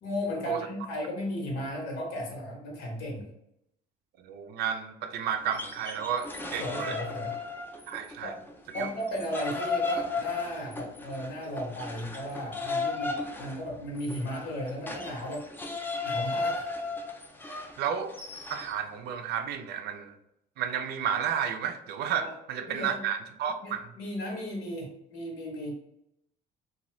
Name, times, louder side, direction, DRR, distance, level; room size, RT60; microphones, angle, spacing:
voice 1, 0.0-3.3 6.6-7.3 8.2-8.3 8.7-15.4 15.8-16.7 22.2-22.3 22.7-23.0 23.6-25.7, equal, 85° left, -1 dB, 1.1 m, -35 dB
voice 2, 4.2-7.0 7.9-8.3 8.8-8.9 17.8-18.1 18.5-20.2 20.6-23.9, right 8 dB, 75° right, 8 dB, 0.4 m, -32 dB
sound 1, 5.4-8.2 8.5-18.8, left 4 dB, 10° left, 0.4 m, -35 dB
2.7 x 2.3 x 3.0 m, 0.80 s
cardioid pair, 110°, 17 cm